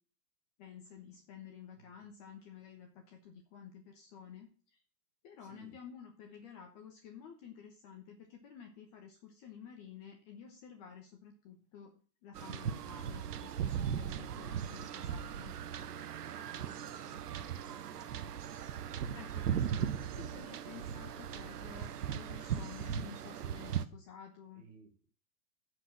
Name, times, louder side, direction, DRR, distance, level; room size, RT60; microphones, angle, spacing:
voice 1, 0.6-4.8 5.2-11.9 12.2-15.5 19.1-24.6, left 7 dB, 25° left, 3 dB, 1.0 m, -52 dB
voice 2, 1.8-2.1 5.4-5.8 16.4-18.4 24.5-25.0, right 4 dB, 15° right, 2 dB, 2.2 m, -60 dB
sound 1, 12.3-23.9, right 8 dB, 70° right, 1.1 m, -38 dB
10.0 x 4.9 x 7.4 m, 0.40 s
hypercardioid pair, 155°, 48 cm